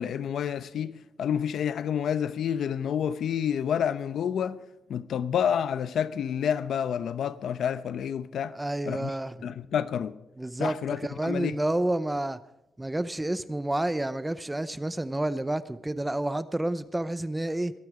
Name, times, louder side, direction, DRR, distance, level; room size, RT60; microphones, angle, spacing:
voice 1, 0.0-4.6 4.9-8.5 8.9-9.1 9.4-10.2 10.6-11.6, left 8 dB, 75° left, 0.8 m, -29 dB
voice 2, 8.5-9.5 10.4-12.4 12.8-17.7, right 1 dB, 10° right, 0.7 m, -30 dB
22.0 x 9.4 x 4.9 m
cardioid pair, 115°, 0 cm